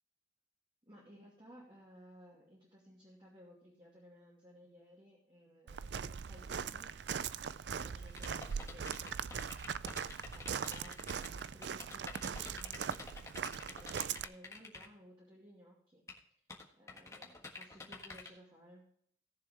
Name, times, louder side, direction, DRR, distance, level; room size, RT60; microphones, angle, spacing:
voice 1, 0.8-6.9 7.7-9.3 10.3-12.9 13.6-16.0 16.8-18.8, equal, 25° right, -5 dB, 2.6 m, -58 dB
Walk footsteps, 5.7-14.3, right 7 dB, 65° right, 0.4 m, -40 dB
sound 1, 8.1-14.8 16.1-16.2 16.5-18.3, left 3 dB, 15° left, 1.5 m, -48 dB
18.0 x 7.1 x 3.4 m, 0.65 s
head